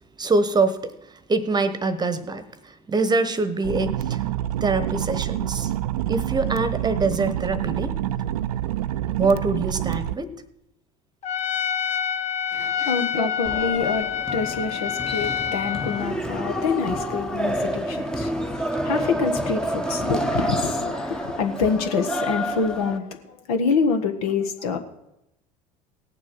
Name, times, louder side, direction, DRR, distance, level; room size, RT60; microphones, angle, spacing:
voice 1, 0.2-0.8 1.3-4.2 4.6-5.7 6.1-8.0 9.2-10.3 12.8-12.9 13.2-13.3, right 3 dB, 20° right, 13 dB, 1.1 m, -24 dB
sound 1, 3.6-10.2, right 12 dB, 75° right, 0.5 m, -27 dB
Trumpet, 11.2-16.1, left 8 dB, 35° left, 0.7 m, -27 dB
voice 2, 12.5-24.8, left 5 dB, 70° left, 6 dB, 1.4 m, -26 dB
sound 2, 13.4-23.0, right 1 dB, 5° left, 0.9 m, -28 dB
17.5 x 7.4 x 6.1 m, 0.86 s
figure-of-eight pair, 70°, 20 cm